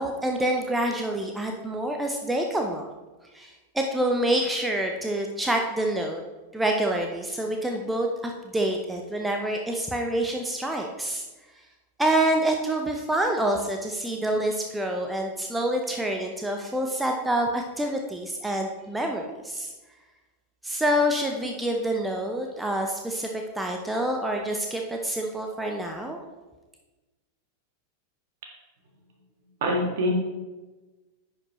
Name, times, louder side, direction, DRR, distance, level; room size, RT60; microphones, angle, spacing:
voice 1, 0.0-2.9 3.3-6.2 6.5-11.3 12.0-19.7 20.6-26.2, right 1 dB, 5° right, 2 dB, 0.6 m, -27 dB
voice 2, 29.6-30.1, equal, 55° right, 1 dB, 1.7 m, -24 dB
10.5 x 5.1 x 3.1 m, 1.2 s
figure-of-eight pair, 90°, 0 cm